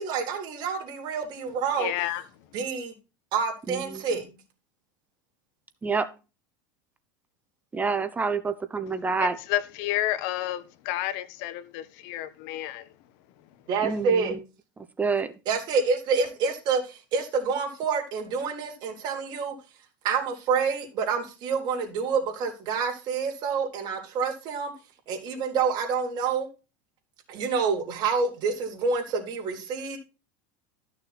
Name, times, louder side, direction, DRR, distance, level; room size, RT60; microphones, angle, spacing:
voice 1, 0.0-1.9 2.5-2.9 3.3-4.3 13.7-14.4 15.5-19.5 20.0-24.7 25.1-26.5 27.3-30.0, right 5 dB, 45° right, 3.7 m, -27 dB
voice 2, 1.8-2.2 9.2-12.9, left 14 dB, 65° left, 1.2 m, -30 dB
voice 3, 3.7-4.0 5.8-6.1 7.7-9.4 13.8-14.4 15.0-15.3, right 4 dB, 15° right, 0.9 m, -27 dB
13.5 x 6.4 x 4.3 m
supercardioid pair, 125°, 10 cm